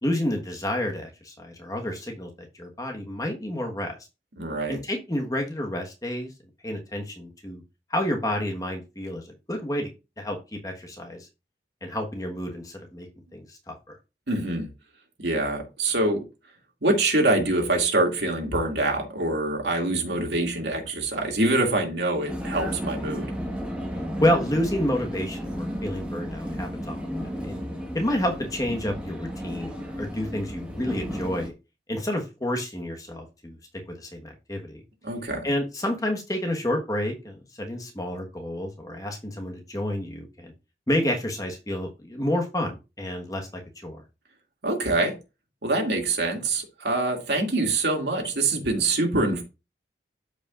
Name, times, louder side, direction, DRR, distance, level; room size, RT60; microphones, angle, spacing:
voice 1, 0.0-4.0 4.7-6.3 6.6-7.6 7.9-9.9 10.2-11.3 11.8-13.7 24.2-27.5 27.9-31.5 31.9-33.6 34.0-34.8 35.4-40.5 40.9-44.0, left 1 dB, 20° left, 1.3 m, -29 dB
voice 2, 4.4-4.8 14.3-14.7 15.2-16.2 16.8-23.3 35.0-35.5 44.6-45.1 45.6-49.4, right 2 dB, 80° right, 2.3 m, -25 dB
Vehicle, 22.3-31.5, equal, 5° right, 1.3 m, -33 dB
13.0 x 5.1 x 2.5 m
head